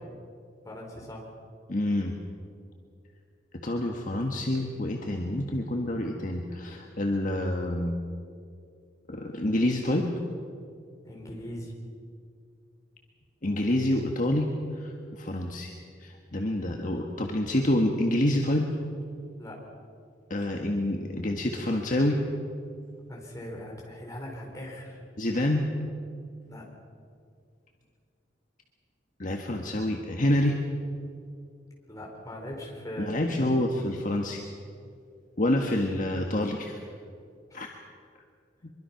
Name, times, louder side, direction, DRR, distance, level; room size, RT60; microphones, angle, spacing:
voice 1, 0.6-1.3 11.1-11.7 19.4-19.6 23.1-25.0 26.4-26.7 31.9-33.7, equal, 20° left, -1 dB, 4.5 m, -40 dB
voice 2, 1.7-2.1 3.6-7.9 9.1-10.1 13.4-14.5 14.8-15.7 16.0-18.7 20.3-22.2 25.2-25.7 29.2-30.6 33.1-34.4 35.4-36.8 37.5-37.7, left 1 dB, 45° left, 1 dB, 1.5 m, -27 dB
24.0 x 23.0 x 5.9 m, 2.3 s
head